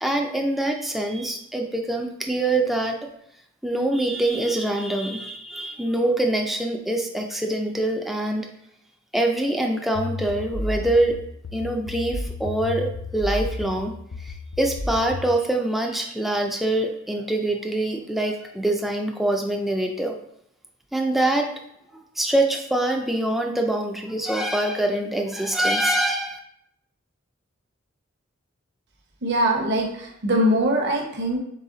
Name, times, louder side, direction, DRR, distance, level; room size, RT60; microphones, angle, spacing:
voice 1, 0.0-3.0 3.6-8.5 9.1-11.2 11.5-20.2 20.9-21.5 21.9-26.4, right 1 dB, ahead, 1 dB, 0.3 m, -24 dB
sound 1, 9.9-15.3, left 2 dB, 65° left, 0.5 m, -32 dB
voice 2, 29.2-31.4, equal, 55° right, 0 dB, 0.8 m, -22 dB
4.0 x 3.4 x 3.8 m, 0.75 s
head